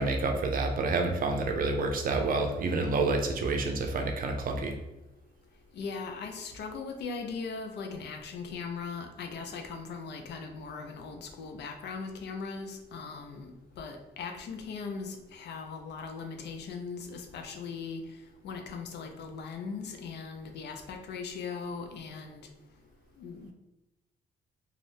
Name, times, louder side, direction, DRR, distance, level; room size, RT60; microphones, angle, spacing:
voice 1, 0.0-4.8, right 3 dB, 55° right, 4 dB, 0.6 m, -28 dB
voice 2, 5.7-18.0 18.4-22.4 23.2-23.5, left 5 dB, 80° left, 4 dB, 0.5 m, -39 dB
2.6 x 2.4 x 3.4 m, 0.96 s
cardioid pair, 115°, 17 cm